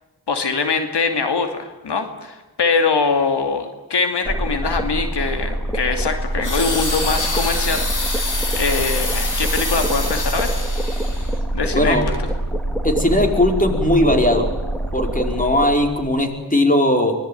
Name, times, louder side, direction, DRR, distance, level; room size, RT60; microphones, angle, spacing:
voice 1, 0.3-10.6 11.5-12.0, left 4 dB, 90° left, 6 dB, 2.7 m, -23 dB
sound 1, 4.2-16.2, right 1 dB, 5° left, 3.9 m, -24 dB
sound 2, 6.4-11.4 12.0-12.2, left 2 dB, 50° left, 4.7 m, -26 dB
voice 2, 11.7-12.1 12.8-14.5 14.9-17.1, left 1 dB, 20° left, 4 dB, 5.1 m, -18 dB
24.5 x 20.5 x 9.4 m, 1.1 s
wide cardioid pair, 65°, 40 cm